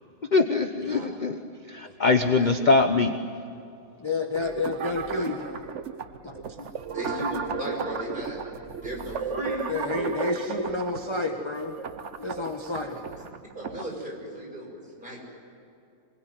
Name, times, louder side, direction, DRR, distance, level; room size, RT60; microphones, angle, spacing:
voice 1, 0.3-3.1, left 3 dB, 35° left, 7 dB, 0.9 m, -23 dB
voice 2, 4.0-5.6 6.2-6.7 9.7-11.7 12.2-13.0, left 3 dB, 15° left, 3 dB, 1.4 m, -30 dB
sound 1, 4.3-13.9, right 6 dB, 50° right, 1.1 m, -34 dB
voice 3, 6.9-8.4 8.8-10.3 12.9-13.0 13.6-15.2, equal, 25° right, -1 dB, 6.7 m, -36 dB
27.0 x 21.0 x 9.6 m, 2.6 s
omnidirectional pair, 2.0 m